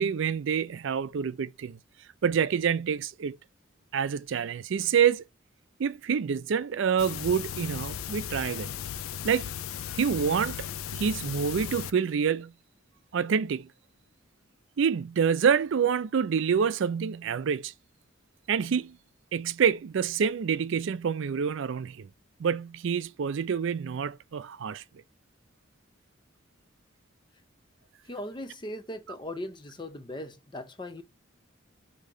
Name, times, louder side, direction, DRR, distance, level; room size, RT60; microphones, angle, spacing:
voice 1, 0.0-1.8 2.2-3.4 3.9-5.2 5.8-8.7 9.2-9.5 9.9-10.7 10.9-12.5 13.1-13.7 14.8-17.7 18.5-19.0 19.3-22.1 22.4-24.8, right 7 dB, 65° right, 0.4 m, -27 dB
sound 1, 7.0-11.9, left 9 dB, 90° left, 0.4 m, -36 dB
voice 2, 28.1-31.0, left 1 dB, 20° left, 0.5 m, -39 dB
4.9 x 2.8 x 3.7 m
head